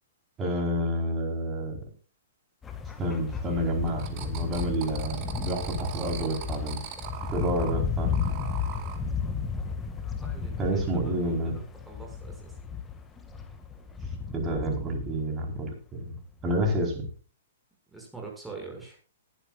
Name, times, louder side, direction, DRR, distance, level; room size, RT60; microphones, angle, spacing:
voice 1, 0.4-1.8 3.0-6.8 7.3-8.1 10.6-11.5 14.3-17.1, right 1 dB, 20° right, 2 dB, 4.7 m, -29 dB
sound 1, 2.6-15.7 16.4-17.2, left 5 dB, 15° left, 2.2 m, -34 dB
sound 2, 3.9-7.7 8.1-9.0, right 9 dB, 35° right, 2.2 m, -40 dB
voice 2, 10.2-12.5 17.9-19.0, right 4 dB, 5° right, -1 dB, 6.8 m, -44 dB
19.5 x 11.5 x 2.6 m, 0.36 s
figure-of-eight pair, 115°, 0 cm